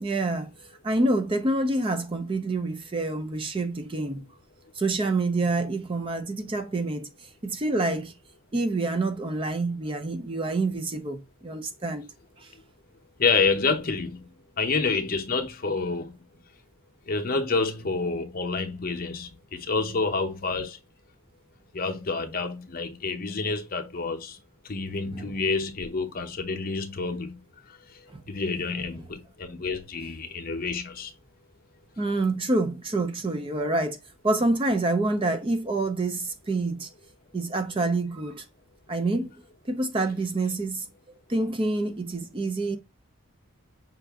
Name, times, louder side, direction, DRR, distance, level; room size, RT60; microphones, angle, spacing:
voice 1, 0.0-0.5 0.8-4.3 4.7-7.1 7.4-8.1 8.5-12.0 12.4-12.5 25.1-25.3 28.1-28.2 32.0-34.0 34.2-36.9 37.3-38.4 38.9-39.4 39.7-40.9 41.3-42.8, right 2 dB, 25° right, 0.4 m, -27 dB
voice 2, 13.2-14.3 14.6-16.2 17.1-20.8 21.7-24.4 24.6-27.4 27.7-31.1, left 4 dB, 40° left, 0.7 m, -28 dB
5.8 x 2.5 x 3.4 m
head